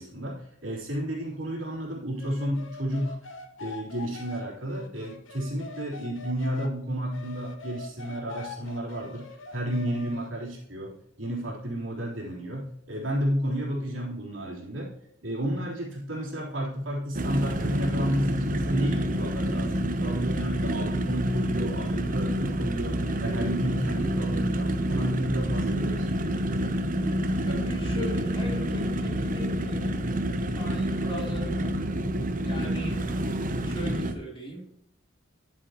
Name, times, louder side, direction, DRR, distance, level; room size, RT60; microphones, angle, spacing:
voice 1, 0.0-3.2 3.6-9.3 9.5-14.9 15.2-26.2, equal, 75° right, -3 dB, 3.6 m, -31 dB
sound 1, 2.2-6.7 7.1-10.3, left 3 dB, 75° left, 1.2 m, -43 dB
sound 2, 17.1-34.1, right 1 dB, 45° right, 0.8 m, -28 dB
voice 2, 27.4-30.0 30.5-31.8 32.4-33.0 33.6-34.7, right 1 dB, 30° left, -2 dB, 3.2 m, -37 dB
11.5 x 7.6 x 3.0 m, 0.74 s
head